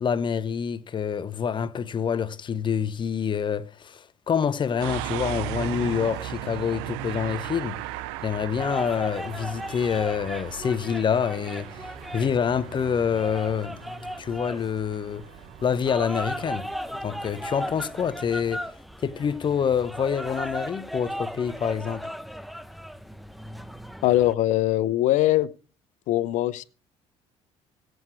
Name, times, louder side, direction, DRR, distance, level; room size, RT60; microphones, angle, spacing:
voice 1, 0.0-7.8 8.2-15.3 15.6-16.7 17.0-18.6 19.0-22.1, left 7 dB, 35° left, 0.8 m, -27 dB
sound 1, 4.8-18.5, right 15 dB, 90° right, 0.5 m, -38 dB
sound 2, 8.6-24.3, equal, ahead, 0.8 m, -37 dB
voice 2, 24.0-25.5 26.1-26.6, left 15 dB, 70° left, 0.8 m, -21 dB
17.0 x 8.0 x 4.7 m
supercardioid pair, 80°, 13 cm